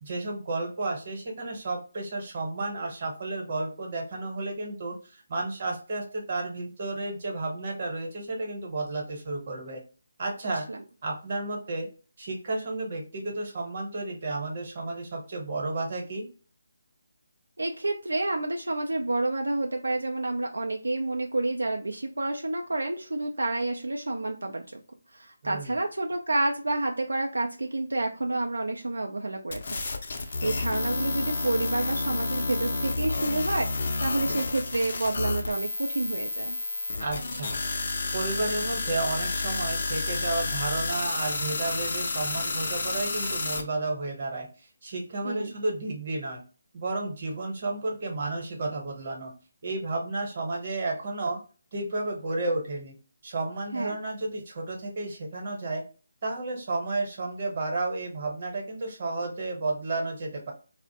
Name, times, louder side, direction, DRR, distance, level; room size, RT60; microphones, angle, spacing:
voice 1, 0.0-9.8 10.2-10.7 11.0-11.9 12.2-16.3 25.4-25.8 37.0-37.6 38.1-46.4 46.7-49.3 49.6-51.4 51.7-52.9 53.2-55.8 56.2-60.5, right 2 dB, 45° right, 1 dB, 0.9 m, -32 dB
voice 2, 17.6-24.8 25.1-29.8 30.1-36.6 45.2-45.5 53.7-54.0, right 2 dB, 85° right, 3 dB, 0.3 m, -29 dB
sound 1, 29.5-43.6, left 3 dB, 55° left, 0.5 m, -30 dB
2.4 x 2.0 x 2.7 m, 0.36 s
figure-of-eight pair, 155°, 0 cm